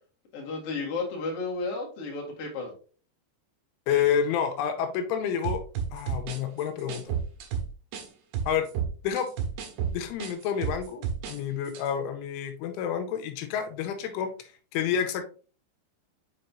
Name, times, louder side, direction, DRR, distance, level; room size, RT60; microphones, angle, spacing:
voice 1, 0.3-2.7, left 3 dB, 55° left, -2 dB, 1.6 m, -33 dB
voice 2, 3.9-5.6 5.9-7.1 8.5-8.7 9.0-9.3 9.9-14.3 14.7-15.2, left 8 dB, 90° left, 7 dB, 3.1 m, -29 dB
sound 1, 5.4-8.1 8.3-11.4 11.7-11.9, right 7 dB, 70° right, 2.9 m, -31 dB
7.7 x 5.3 x 2.7 m, 0.39 s
omnidirectional pair, 5.6 m